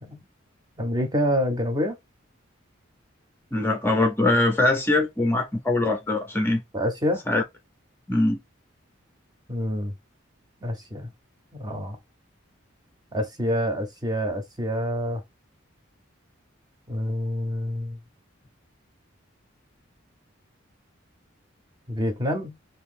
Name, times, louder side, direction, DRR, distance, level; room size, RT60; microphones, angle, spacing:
voice 1, 0.8-1.9 6.7-7.2 9.5-9.9 10.6-11.1 11.5-12.0 13.1-15.2 16.9-18.0 21.9-22.6, equal, 20° right, 0.7 m, -27 dB
voice 2, 3.5-6.6 7.3-7.4 8.1-8.4, left 2 dB, 10° left, 0.6 m, -22 dB
2.8 x 2.7 x 3.6 m
head